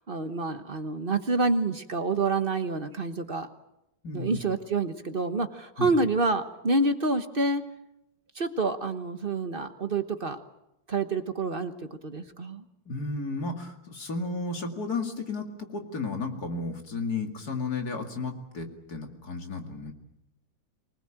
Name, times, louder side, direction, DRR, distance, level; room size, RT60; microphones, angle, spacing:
voice 1, 0.0-3.5 4.1-7.7 8.3-10.4 10.9-11.7 12.0-12.6, right 3 dB, 35° right, 8 dB, 1.0 m, -28 dB
voice 2, 4.0-4.4 5.8-5.9 12.9-19.9, left 3 dB, 45° left, 4 dB, 2.8 m, -33 dB
24.5 x 19.5 x 8.9 m, 0.87 s
omnidirectional pair, 2.3 m